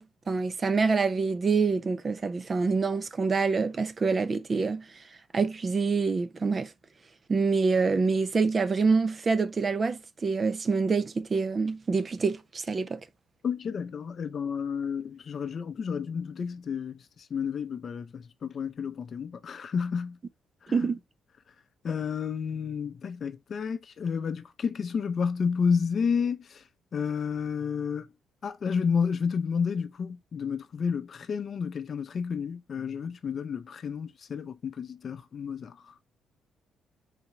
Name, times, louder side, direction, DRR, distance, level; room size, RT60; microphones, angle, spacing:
voice 1, 0.0-4.8 5.3-6.7 7.3-13.0 20.7-21.0, right 4 dB, 35° right, 0.4 m, -26 dB
voice 2, 13.4-17.0 17.3-20.2 20.7-20.9 21.8-26.6 26.9-28.1 28.4-35.9, left 6 dB, 50° left, 0.5 m, -31 dB
4.1 x 2.9 x 3.3 m
cardioid pair, 90°, 0 cm